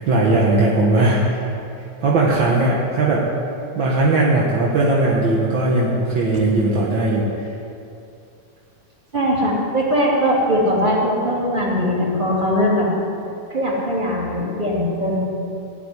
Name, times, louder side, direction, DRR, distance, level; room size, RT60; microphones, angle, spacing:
voice 1, 0.1-1.4 2.0-3.3 3.7-7.3, right 2 dB, 50° right, -4 dB, 1.6 m, -18 dB
voice 2, 9.1-12.9 13.5-15.3, equal, 15° right, -5 dB, 2.7 m, -20 dB
17.0 x 7.0 x 9.8 m, 2.6 s
omnidirectional pair, 4.0 m